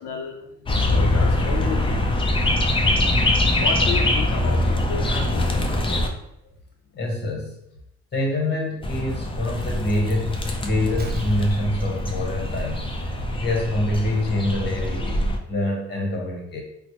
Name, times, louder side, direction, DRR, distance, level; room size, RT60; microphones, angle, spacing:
voice 1, 0.0-2.6 3.5-6.1, left 5 dB, 80° left, 3 dB, 0.5 m, -33 dB
sound 1, 0.7-6.1 8.8-15.4, left 1 dB, 20° left, 0.4 m, -23 dB
voice 2, 6.9-7.6 8.1-16.6, left 1 dB, 35° left, 0 dB, 1.0 m, -26 dB
Explosion, 11.0-13.6 13.9-14.0, right 3 dB, 35° right, 0.5 m, -36 dB
4.1 x 2.1 x 2.9 m, 0.81 s
cardioid pair, 90°, 30 cm